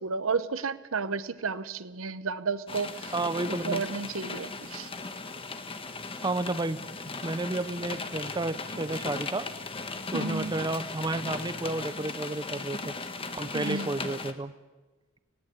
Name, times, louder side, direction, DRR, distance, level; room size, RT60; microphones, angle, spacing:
voice 1, 0.0-3.1 3.6-4.9 10.1-10.5 13.5-13.9, right 4 dB, 70° right, 14 dB, 0.9 m, -32 dB
sound 1, 2.7-14.3, left 3 dB, 25° left, 1.3 m, -37 dB
voice 2, 3.1-3.8 6.2-6.8 7.2-9.4 10.1-12.9 13.3-14.5, right 2 dB, 20° right, 12 dB, 0.6 m, -31 dB
19.5 x 17.0 x 8.2 m, 1.3 s
head